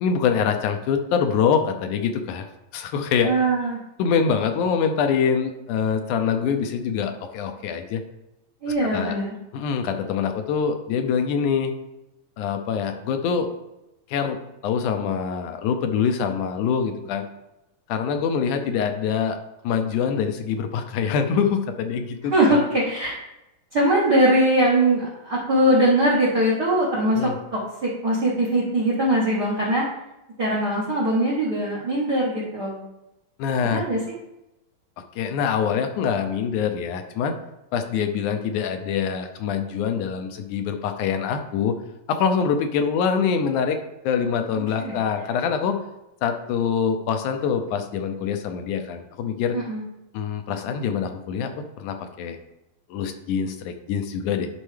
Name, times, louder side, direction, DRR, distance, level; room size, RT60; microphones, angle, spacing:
voice 1, 0.0-2.5 2.7-3.3 4.0-8.0 8.8-9.2 9.5-11.7 12.4-13.5 14.1-14.4 14.6-17.3 17.9-19.4 19.6-22.6 27.1-27.3 33.4-33.8 35.2-37.4 37.7-41.8 42.1-43.8 44.0-45.8 46.2-49.6 50.1-52.4 52.9-54.5, left 6 dB, 75° left, 6 dB, 1.9 m, -24 dB
voice 2, 3.2-3.8 8.6-9.3 22.3-23.2 23.7-29.8 30.4-32.8 33.6-34.0 44.8-44.9 49.5-49.8, right 1 dB, 70° right, -5 dB, 0.9 m, -21 dB
11.5 x 4.4 x 3.3 m, 0.92 s
omnidirectional pair, 3.9 m